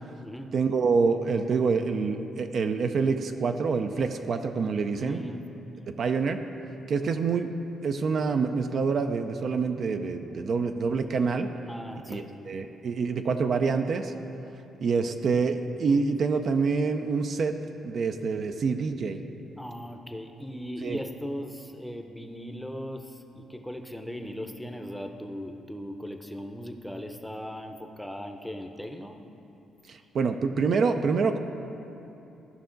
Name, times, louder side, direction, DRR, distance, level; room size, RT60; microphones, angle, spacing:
voice 1, 0.5-5.2 5.9-6.4 6.9-7.5 7.8-11.5 12.1-14.1 14.8-17.5 17.8-19.2 20.8-21.0 29.9-31.4, right 5 dB, 55° right, 7 dB, 0.4 m, -26 dB
voice 2, 4.9-5.4 11.7-12.3 19.6-29.2, equal, 5° left, 4 dB, 0.7 m, -38 dB
14.0 x 5.5 x 3.9 m, 2.9 s
cardioid pair, 90°, 0 cm